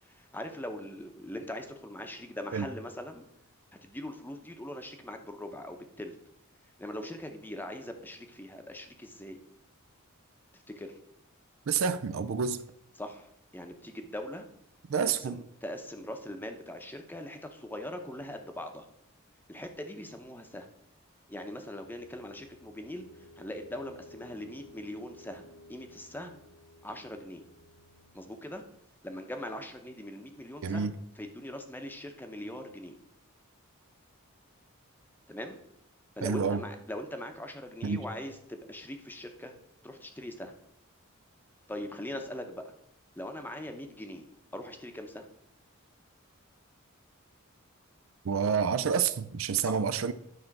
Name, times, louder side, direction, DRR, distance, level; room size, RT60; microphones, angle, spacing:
voice 1, 0.0-3.3 3.8-6.2 6.8-9.4 10.7-11.0 13.0-14.5 14.9-18.9 19.5-20.7 21.3-26.4 26.8-27.4 28.1-28.6 29.0-33.0 35.3-35.6 36.1-39.5 39.8-40.6 41.7-42.7 43.1-44.3 44.5-45.3 49.6-49.8, left 1 dB, 10° left, 0.8 m, -41 dB
voice 2, 11.7-12.6 14.9-15.4 30.6-30.9 36.2-36.6 37.8-38.0 48.2-50.1, right 6 dB, 65° right, 0.4 m, -28 dB
sound 1, 21.8-28.3, left 1 dB, 90° left, 1.6 m, -55 dB
9.9 x 3.8 x 5.9 m
head